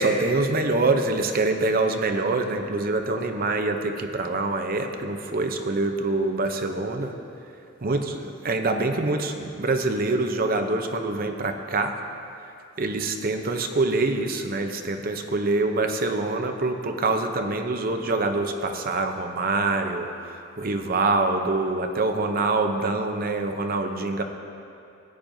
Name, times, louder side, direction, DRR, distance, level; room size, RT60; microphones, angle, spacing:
voice 1, 0.0-7.1 7.8-11.9 12.8-20.1 20.6-24.2, right 3 dB, 45° right, 5 dB, 0.7 m, -25 dB
15.0 x 8.9 x 2.7 m, 2.6 s
head